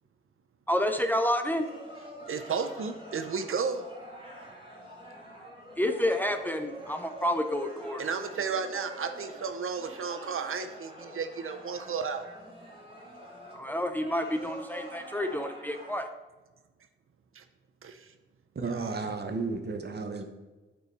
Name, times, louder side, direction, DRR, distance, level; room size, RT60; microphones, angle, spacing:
voice 1, 0.7-1.7 5.8-8.0 13.5-16.1, left 1 dB, 10° left, 6 dB, 0.5 m, -29 dB
sound 1, 1.5-15.9, equal, 25° right, 2.4 m, -46 dB
voice 2, 2.3-3.8 8.0-12.2 17.4-17.5 17.8-18.1 18.8-18.9, right 5 dB, 80° right, 8 dB, 0.5 m, -33 dB
voice 3, 18.5-20.2, right 4 dB, 50° right, 5 dB, 0.9 m, -33 dB
8.3 x 4.7 x 4.0 m, 1.2 s
wide cardioid pair, 95°, 21 cm